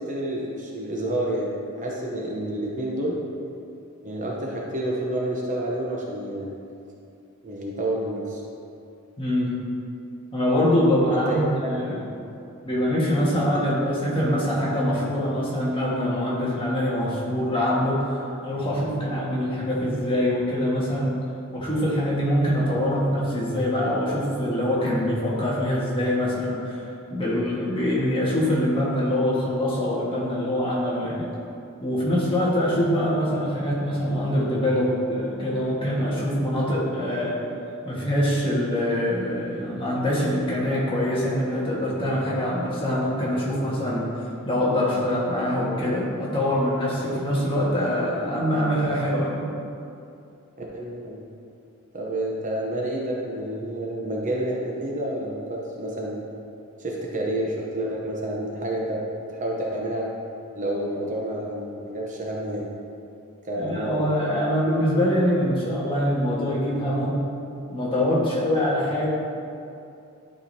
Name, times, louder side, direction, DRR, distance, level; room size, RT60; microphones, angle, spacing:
voice 1, 0.0-3.2 4.0-6.6 7.4-8.4 11.1-12.0 13.8-14.2 50.7-51.2 51.9-56.2 56.8-59.0 59.3-60.1 60.5-62.7 63.4-64.1, right 1 dB, 35° right, -3 dB, 0.9 m, -29 dB
voice 2, 9.2-9.6 10.3-12.0 12.6-21.1 21.5-26.8 27.1-31.3 31.8-37.3 37.8-44.1 44.4-49.5 63.6-67.2 67.7-69.1, equal, 25° left, -7 dB, 1.6 m, -24 dB
11.5 x 5.0 x 2.8 m, 2.6 s
head